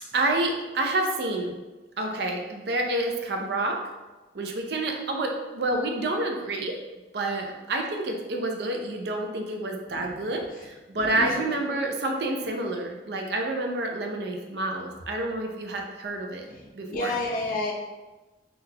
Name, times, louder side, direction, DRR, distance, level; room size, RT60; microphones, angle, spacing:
voice 1, 0.1-1.5 2.0-3.8 4.3-6.8 7.1-16.5 16.8-17.1, right 2 dB, 65° right, 2 dB, 0.5 m, -28 dB
voice 2, 9.9-10.2 10.9-11.4 16.5-17.7, left 2 dB, 50° left, -1 dB, 0.6 m, -31 dB
3.7 x 2.4 x 2.7 m, 1.2 s
head